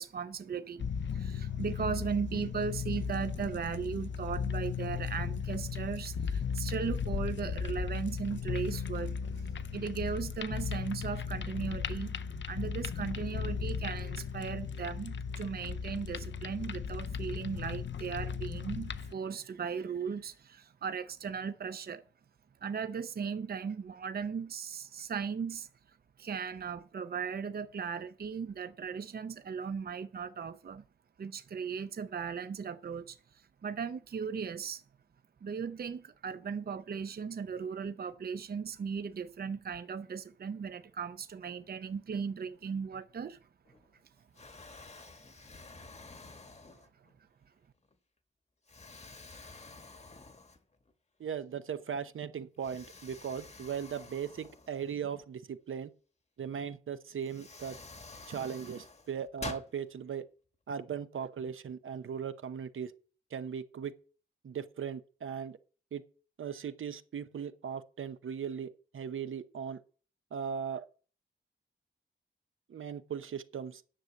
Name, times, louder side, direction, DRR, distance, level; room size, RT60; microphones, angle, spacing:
voice 1, 0.0-22.0 22.6-30.8 31.2-34.8 35.4-43.4 45.8-45.9 47.0-47.1, right 6 dB, 50° right, 0.6 m, -37 dB
sound 1, 0.8-19.1, left 6 dB, 65° left, 0.6 m, -36 dB
Explosion, 43.6-44.0 44.3-47.2 47.8-47.9 48.7-50.9 51.3-51.4 52.6-55.2 56.7-56.8 57.2-59.7, left 3 dB, 35° left, 1.2 m, -49 dB
voice 2, 51.2-55.9 56.4-57.7 58.3-60.2 60.7-62.9 63.3-63.9 64.4-65.6 65.9-66.0 66.4-69.8 70.3-70.8 72.7-73.8, right 7 dB, 80° right, 0.9 m, -38 dB
10.0 x 6.6 x 7.9 m
wide cardioid pair, 145°, 21 cm